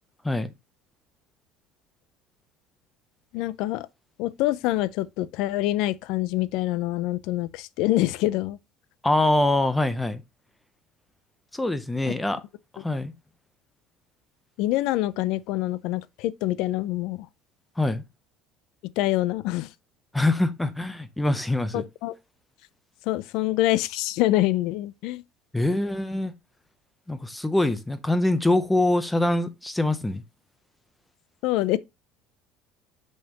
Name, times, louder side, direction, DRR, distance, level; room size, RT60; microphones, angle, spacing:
voice 1, 3.3-3.9 4.2-8.6 12.0-12.1 14.6-17.3 19.0-19.7 21.7-22.2 23.1-25.2 31.4-31.8, left 16 dB, 60° left, 0.5 m, -25 dB
voice 2, 9.0-10.2 11.5-12.4 12.8-13.1 17.8-18.0 20.1-21.8 25.5-26.3 27.1-30.2, left 2 dB, 5° left, 0.7 m, -24 dB
7.1 x 5.4 x 2.9 m
cardioid pair, 175°, 0 cm